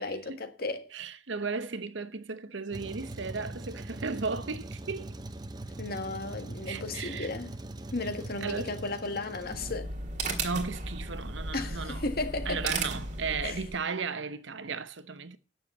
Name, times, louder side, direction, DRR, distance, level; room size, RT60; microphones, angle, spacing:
voice 1, 0.0-0.9 5.8-7.6 7.9-9.9 11.5-12.7 13.4-13.6, left 2 dB, 50° left, 1.6 m, -34 dB
voice 2, 0.9-5.2 6.7-7.3 8.4-8.8 10.4-12.0 12.5-15.4, right 4 dB, 70° right, 0.9 m, -35 dB
Truck, 2.7-9.7, right 1 dB, 20° right, 0.7 m, -41 dB
sound 1, 9.4-13.8, right 3 dB, 35° right, 2.5 m, -35 dB
9.7 x 7.0 x 8.3 m
head